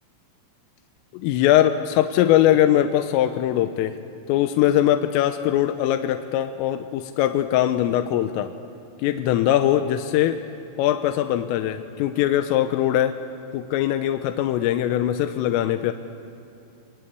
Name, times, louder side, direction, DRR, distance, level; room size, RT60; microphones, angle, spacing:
voice 1, 1.1-4.0 4.3-8.5 9.0-10.4 10.8-13.2 13.5-15.9, left 12 dB, 80° left, 7 dB, 3.3 m, -21 dB
29.0 x 21.0 x 8.3 m, 2.7 s
omnidirectional pair, 6.0 m